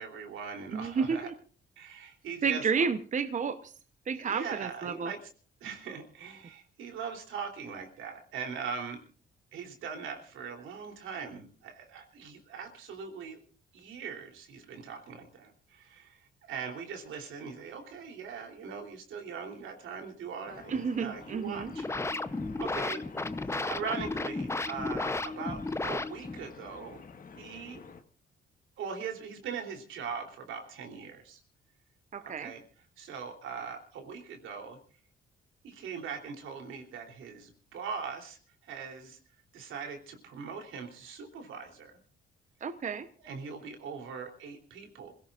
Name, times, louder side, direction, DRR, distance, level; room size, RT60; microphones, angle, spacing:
voice 1, 0.0-1.3 1.8-2.8 4.1-5.3 5.6-9.0 9.5-13.4 13.7-23.0 23.7-27.0 27.4-27.8 28.8-31.4 32.2-32.6 33.0-34.8 35.6-39.2 39.5-42.0 43.2-45.1, right 6 dB, 80° right, 4 dB, 3.4 m, -41 dB
voice 2, 0.7-1.3 2.4-3.7 4.1-5.1 20.7-21.7 32.1-32.5 42.6-43.1, right 5 dB, 40° right, 10 dB, 0.9 m, -31 dB
sound 1, 20.4-28.0, left 5 dB, 45° left, 1.5 m, -50 dB
sound 2, 21.5-26.5, left 2 dB, 15° left, 0.7 m, -34 dB
27.0 x 17.0 x 2.5 m, 0.41 s
cardioid pair, 90°, 20 cm